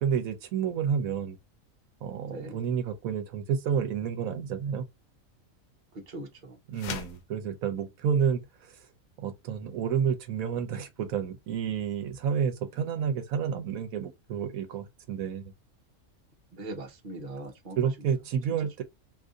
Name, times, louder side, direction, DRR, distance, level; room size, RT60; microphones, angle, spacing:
voice 1, 0.0-1.4 2.0-4.8 6.7-8.8 9.2-15.5 17.8-18.8, right 7 dB, 80° right, 1.1 m, -30 dB
voice 2, 2.3-2.6 5.9-6.6 16.5-17.8, right 2 dB, 40° right, 0.9 m, -40 dB
sound 1, 6.7-7.3, left 7 dB, 75° left, 1.0 m, -37 dB
2.7 x 2.5 x 3.6 m
omnidirectional pair, 1.4 m